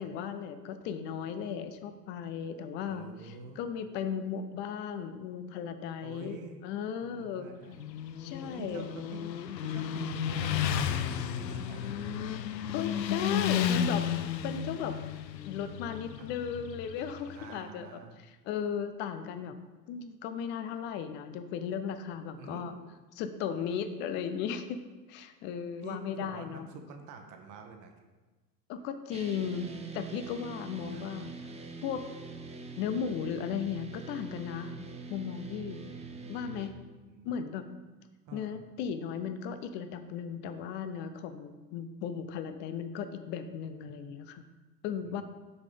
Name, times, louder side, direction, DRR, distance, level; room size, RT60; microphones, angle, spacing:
voice 1, 0.0-6.4 6.6-7.5 8.2-8.8 12.7-14.1 14.4-15.0 15.4-18.0 18.5-19.5 19.9-22.7 23.2-24.8 25.1-26.7 28.7-31.3 31.8-32.1 32.8-34.7 35.1-35.8 36.3-36.7 37.2-37.6 38.3-44.4 44.8-45.2, left 7 dB, 25° left, 10 dB, 0.3 m, -36 dB
voice 2, 2.9-3.7 6.0-6.6 7.0-9.2 9.6-12.2 17.3-18.2 22.4-22.8 25.8-27.9 30.9-31.1 35.8-36.6 37.1-37.5 38.3-38.6 45.1-45.2, right 5 dB, 40° right, 5 dB, 1.1 m, -47 dB
Motorcycle, 7.7-17.5, left 8 dB, 80° left, 0.6 m, -33 dB
sound 1, 29.1-36.7, right 4 dB, 15° right, 0.7 m, -44 dB
7.0 x 4.9 x 5.2 m, 1.2 s
figure-of-eight pair, 75°, 50 cm